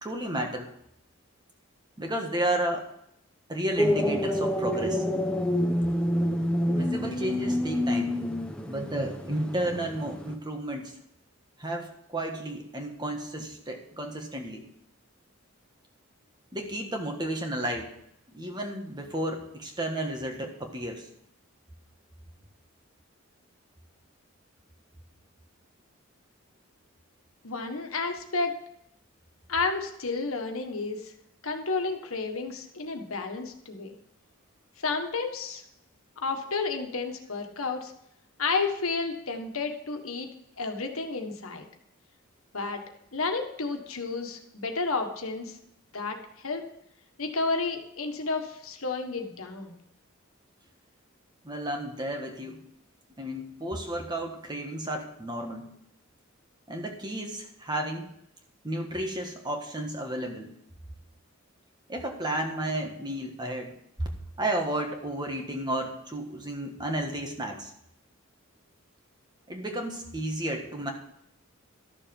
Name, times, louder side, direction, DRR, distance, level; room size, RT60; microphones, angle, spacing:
voice 1, 0.0-0.7 2.0-2.9 3.5-5.0 6.7-8.2 8.7-11.0 11.6-14.6 16.5-17.9 18.3-21.1 51.4-52.6 53.2-55.7 56.7-58.1 58.6-60.5 61.9-63.7 64.0-64.1 64.4-67.7 69.5-70.9, right 1 dB, 20° right, 3 dB, 1.6 m, -32 dB
sound 1, 3.8-10.3, left 1 dB, 5° left, 0.9 m, -28 dB
voice 2, 27.4-28.6 29.5-31.1 31.4-34.0 34.8-35.6 36.2-37.9 38.4-40.3 40.6-41.6 42.5-42.8 43.1-45.6 45.9-46.2 46.4-46.6 47.2-49.7, left 4 dB, 85° left, 4 dB, 1.6 m, -31 dB
13.0 x 7.0 x 5.3 m, 0.75 s
head